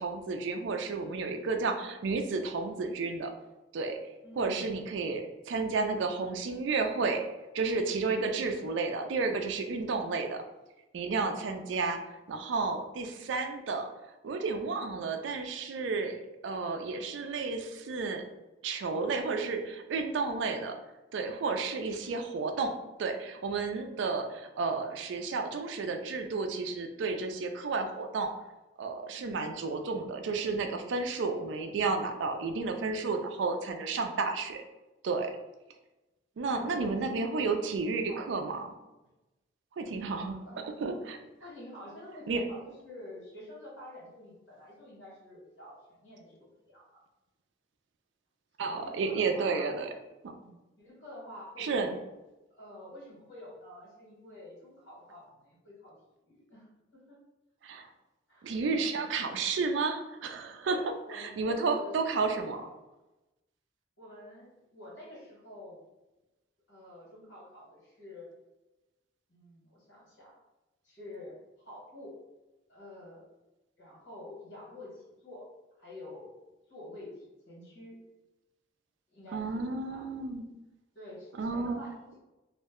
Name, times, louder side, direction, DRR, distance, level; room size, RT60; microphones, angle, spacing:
voice 1, 0.0-3.3 3.7-4.0 4.4-7.2 7.5-10.4 10.9-12.0 12.3-13.9 14.2-18.2 18.6-20.8 21.1-22.7 23.0-28.3 28.8-34.6 35.0-35.4 36.4-38.7 39.8-40.4 40.8-41.2 42.3-42.4 48.6-49.9 50.2-50.4 51.6-51.9 57.6-57.9 58.4-60.8 61.1-62.6 79.3-80.4 81.3-81.8, right 4 dB, 70° right, 5 dB, 0.3 m, -32 dB
voice 2, 4.2-4.7 29.2-29.7 36.4-37.0 37.3-37.6 37.9-38.2 40.4-40.7 41.4-47.0 48.6-49.7 50.3-51.9 52.5-55.9 56.3-57.2 58.3-58.5 60.6-62.7 64.0-65.8 66.7-68.3 69.3-70.3 70.8-72.1 72.7-73.3 73.8-75.4 75.8-76.3 76.7-78.0 79.1-80.1 80.9-82.2, left 1 dB, 75° left, -5 dB, 1.3 m, -48 dB
2.5 x 2.1 x 3.5 m, 1.0 s
head